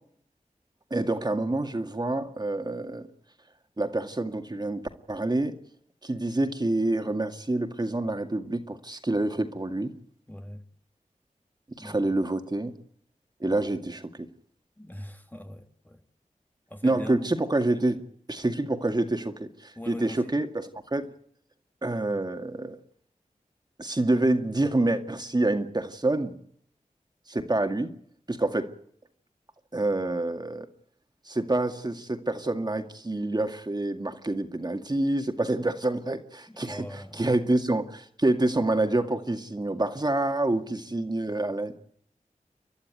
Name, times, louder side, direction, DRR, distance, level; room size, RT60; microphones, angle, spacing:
voice 1, 0.9-3.1 3.8-5.6 6.0-9.9 11.7-12.7 13.4-14.3 16.8-18.0 18.3-21.1 21.8-22.8 23.8-26.4 27.3-27.9 28.3-28.7 29.7-30.7 31.3-41.8, right 2 dB, 30° right, 2.0 m, -27 dB
voice 2, 10.3-10.7 11.8-12.1 14.8-16.0 16.7-17.3 19.8-20.3 36.5-37.3, left 1 dB, 15° left, 1.6 m, -42 dB
29.5 x 11.5 x 9.1 m
wide cardioid pair, 60°, 14 cm